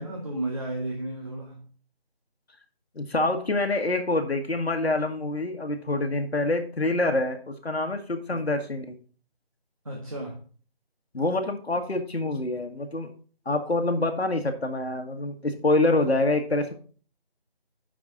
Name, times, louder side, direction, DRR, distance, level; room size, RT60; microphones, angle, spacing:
voice 1, 0.0-1.7 8.3-8.5 9.8-10.4, right 1 dB, 35° right, -1 dB, 1.4 m, -33 dB
voice 2, 2.9-8.9 11.1-13.1 13.4-16.7, left 2 dB, 90° left, 4 dB, 1.6 m, -26 dB
6.5 x 6.0 x 5.9 m, 0.41 s
figure-of-eight pair, 180°, 31 cm